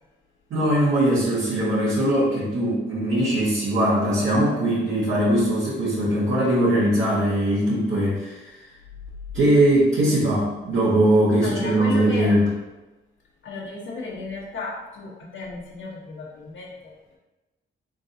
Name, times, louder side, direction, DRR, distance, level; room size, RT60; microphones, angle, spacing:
voice 1, 0.5-8.5 9.3-12.5, right 1 dB, 80° right, -10 dB, 1.3 m, -21 dB
voice 2, 11.4-12.3 13.4-16.9, left 3 dB, 75° left, -3 dB, 1.1 m, -34 dB
3.9 x 3.7 x 2.7 m, 1.1 s
cardioid pair, 80°, 20 cm